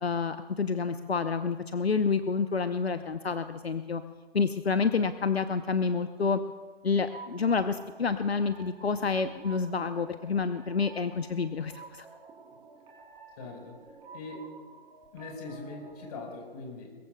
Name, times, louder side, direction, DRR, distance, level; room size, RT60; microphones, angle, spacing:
voice 1, 0.0-4.0 4.3-6.4 6.8-12.1, left 5 dB, 75° left, 10 dB, 0.8 m, -28 dB
sound 1, 7.1-16.3, right 4 dB, 15° right, 2.8 m, -50 dB
voice 2, 13.4-13.8 14.1-14.5 15.1-17.0, left 3 dB, 40° left, 1 dB, 4.7 m, -41 dB
22.0 x 21.0 x 2.2 m, 1.5 s
figure-of-eight pair, 130°, 31 cm